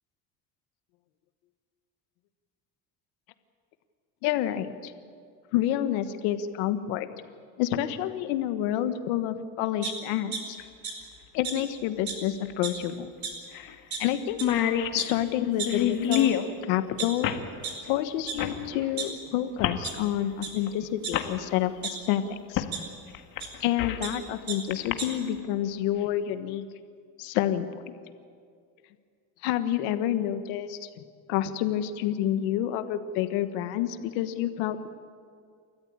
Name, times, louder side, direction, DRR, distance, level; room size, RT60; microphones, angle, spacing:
voice 1, 4.2-4.9 5.5-7.1 7.6-10.6 11.3-13.1 14.0-14.4 14.9-16.3 16.7-17.3 17.9-21.7 22.1-22.6 23.6-26.6 27.2-27.9 29.4-30.9 31.3-34.9, left 12 dB, 90° left, 10 dB, 1.5 m, -28 dB
sound 1, 9.8-10.4 10.8-10.9 11.4-11.5 12.1-12.2 12.5-12.8 13.2-13.3 13.9-14.0 14.4-14.5 15.0-15.1 15.6-15.7 16.1-16.2 16.8-17.7 18.3-18.4 18.7-19.4 19.8-19.9 20.4-20.5 21.0-21.9 22.7-22.8 23.4-23.5 23.8-24.1 24.5-24.6 24.8-25.1, right 6 dB, 45° right, 4.7 m, -34 dB
sound 2, 10.6-10.7 12.5-12.6 12.9-13.0 13.5-13.7 14.0-14.1 14.3-16.5 17.2-17.5 18.4-18.6 19.6-19.8 20.7-20.8 21.1-21.3 22.6-22.7 23.1-24.1 24.7-24.9, left 10 dB, 50° left, 1.8 m, -27 dB
29.5 x 14.0 x 8.7 m, 2.2 s
cardioid pair, 130°, 40 cm